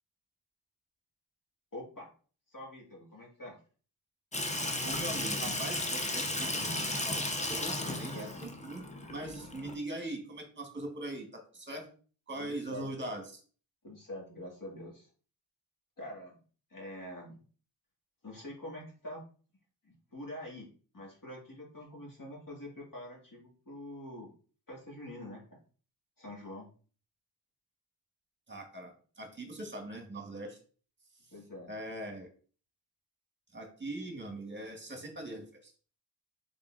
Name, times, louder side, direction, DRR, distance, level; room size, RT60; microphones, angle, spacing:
voice 1, 1.7-2.1 2.5-3.6 7.8-8.4 12.4-12.9 13.8-15.1 16.0-16.4 16.7-17.4 18.2-19.2 19.8-20.7 20.9-24.3 24.7-25.4 26.2-26.7 31.3-31.7, left 1 dB, 45° left, -2 dB, 1.8 m, -45 dB
Water tap faucet / Sink (filling or washing), 4.3-9.7, left 2 dB, 15° left, 0.7 m, -34 dB
voice 2, 4.8-8.8 9.1-11.9 12.3-13.4 28.5-30.6 31.7-32.3 33.5-35.7, right 1 dB, 25° right, 3 dB, 1.3 m, -41 dB
3.8 x 3.7 x 2.4 m, 0.41 s
cardioid pair, 50°, 43 cm